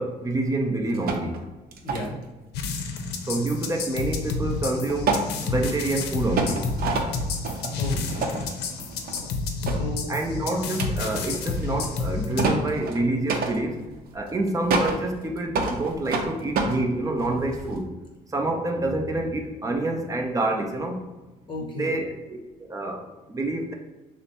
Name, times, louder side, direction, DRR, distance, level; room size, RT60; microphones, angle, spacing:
voice 1, 0.0-1.4 3.3-6.7 10.1-13.8 14.1-17.9 18.3-21.0 21.8-23.7, right 2 dB, 20° right, 3 dB, 0.6 m, -27 dB
sound 1, 0.9-1.4 1.7-2.2 4.5-4.6 4.9-5.9 6.4-9.4 9.7-9.9 10.7-17.8, right 3 dB, 60° right, 0.6 m, -29 dB
voice 2, 1.8-2.2 7.8-8.4 9.6-10.1 21.5-22.0, equal, 30° left, 0 dB, 1.0 m, -34 dB
sound 2, 2.5-12.5, left 3 dB, 80° left, 0.6 m, -30 dB
6.0 x 2.1 x 3.0 m, 1.1 s
cardioid pair, 110°, 17 cm